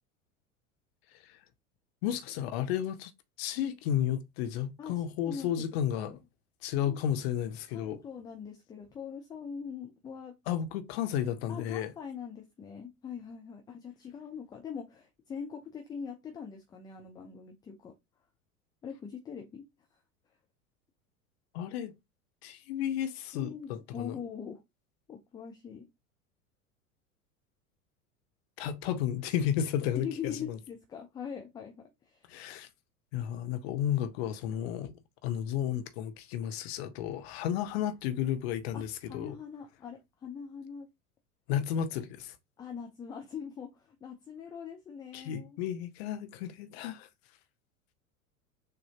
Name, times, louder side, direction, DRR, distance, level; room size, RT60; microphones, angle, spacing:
voice 1, 2.0-3.1 3.4-6.2 6.6-8.0 10.5-11.9 21.5-21.9 22.4-24.1 28.6-30.6 32.3-32.7 33.1-34.9 35.2-39.4 41.5-42.3 45.1-47.1, left 10 dB, 45° left, 0.8 m, -32 dB
voice 2, 4.8-6.2 6.9-7.0 7.7-10.4 11.5-17.9 18.8-19.7 23.3-24.6 25.1-25.9 29.9-32.3 38.7-40.9 42.6-45.6, left 7 dB, 10° left, 0.4 m, -42 dB
6.6 x 2.7 x 2.8 m
figure-of-eight pair, 80°, 42 cm